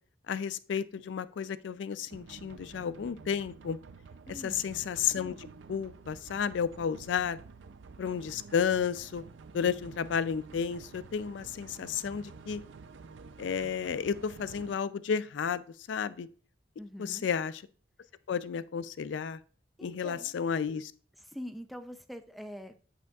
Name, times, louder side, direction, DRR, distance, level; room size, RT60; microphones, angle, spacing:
voice 1, 0.3-3.8 4.3-7.4 8.0-9.2 9.5-12.6 13.4-15.6 15.9-16.3 17.0-17.6 18.3-19.4 19.8-20.9, left 7 dB, 75° left, 16 dB, 0.4 m, -32 dB
sound 1, 2.1-14.7, right 4 dB, 80° right, 0.4 m, -50 dB
voice 2, 4.3-4.6 16.8-17.3 19.8-20.3 21.2-22.7, equal, ahead, 8 dB, 0.4 m, -44 dB
8.3 x 7.0 x 2.3 m, 0.41 s
head